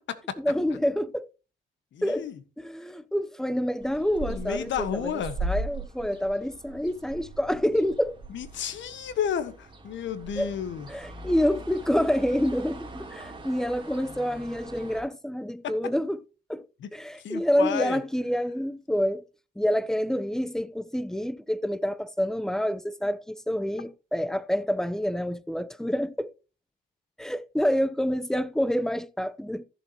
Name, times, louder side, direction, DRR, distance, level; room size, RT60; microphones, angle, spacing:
voice 1, 0.4-1.3 2.0-2.3 2.6-8.2 10.4-10.5 10.9-16.2 16.5-16.7 16.9-19.2 19.6-26.3 27.2-29.6, equal, ahead, 0.8 m, -27 dB
voice 2, 1.9-2.3 4.3-5.4 8.3-10.9 16.8-16.9 17.2-18.0, left 8 dB, 70° left, 1.5 m, -32 dB
sound 1, 3.8-15.0, right 2 dB, 25° right, 3.3 m, -39 dB
14.5 x 7.2 x 3.0 m
cardioid pair, 90°, 20 cm